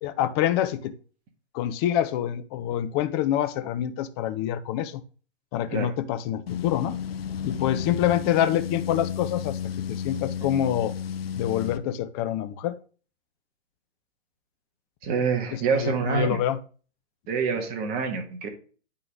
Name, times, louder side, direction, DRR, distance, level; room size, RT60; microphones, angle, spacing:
voice 1, 0.0-0.9 1.5-5.0 5.5-7.0 7.4-9.6 9.9-10.9 11.4-12.8 15.5-16.6, left 11 dB, 25° left, 11 dB, 0.5 m, -26 dB
sound 1, 6.5-11.8, left 8 dB, 60° left, 0.7 m, -32 dB
voice 2, 15.0-16.4 17.3-18.5, right 5 dB, 25° right, 4 dB, 1.5 m, -26 dB
9.5 x 3.8 x 3.8 m, 0.40 s
hypercardioid pair, 130°, 34 cm